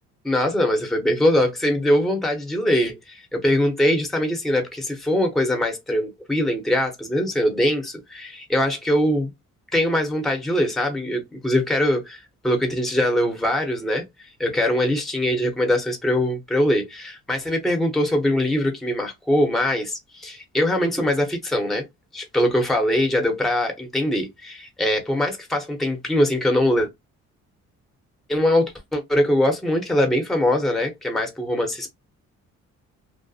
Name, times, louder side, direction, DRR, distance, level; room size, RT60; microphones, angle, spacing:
voice 1, 0.2-9.3 9.7-14.0 14.4-21.8 22.1-26.9 28.3-31.9, left 1 dB, ahead, 0.7 m, -22 dB
2.6 x 2.1 x 2.3 m
cardioid pair, 90°, 30 cm